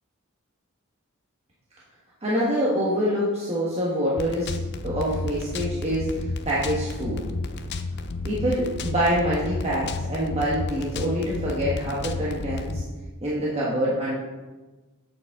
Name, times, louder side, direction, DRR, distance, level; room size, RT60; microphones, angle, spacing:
voice 1, 2.2-4.5 4.8-7.2 8.2-12.8 13.2-14.1, equal, 30° right, -7 dB, 1.3 m, -25 dB
sound 1, 4.2-12.8, left 3 dB, 50° left, 0.5 m, -31 dB
8.1 x 6.9 x 3.7 m, 1.2 s
head